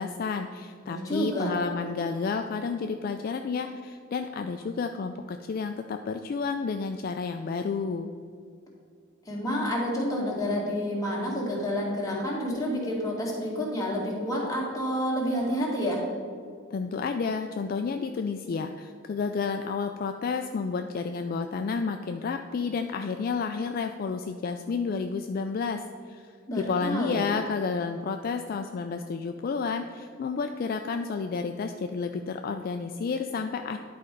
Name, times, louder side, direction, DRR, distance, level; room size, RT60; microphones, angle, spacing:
voice 1, 0.0-8.1 16.7-25.8 26.1-33.8, left 5 dB, 45° left, 6 dB, 0.3 m, -31 dB
voice 2, 0.8-1.5 9.3-16.0 26.5-27.2, equal, 15° left, -4 dB, 1.8 m, -29 dB
10.5 x 4.3 x 5.2 m, 2.3 s
head